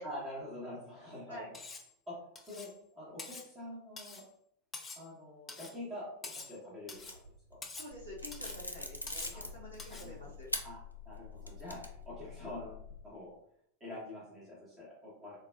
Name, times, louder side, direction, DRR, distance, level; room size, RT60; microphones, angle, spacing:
voice 1, 0.0-1.6 2.1-2.2 2.4-4.2 4.9-7.0 7.5-7.6 9.3-9.5 9.9-10.3 10.6-10.8 11.0-13.3 13.8-15.4, left 1 dB, 20° right, -8 dB, 1.0 m, -46 dB
Cutlery silverware, 1.5-1.9 2.4-2.8 3.2-3.5 4.0-4.3 4.7-5.1 5.5-5.8 6.2-6.6 6.9-7.2 7.6-7.9 8.3-8.6 9.1-9.4 9.8-10.1, left 4 dB, 15° left, 0.4 m, -46 dB
sound 1, 6.9-7.5 8.2-10.0 10.5-10.6 11.1-12.1, left 1 dB, 85° left, 0.3 m, -41 dB
voice 2, 7.7-10.5, equal, 80° right, -7 dB, 1.3 m, -48 dB
sound 2, 7.9-12.9, left 9 dB, 45° right, 0.7 m, -50 dB
3.3 x 2.2 x 2.3 m, 0.72 s
figure-of-eight pair, 90°, 0 cm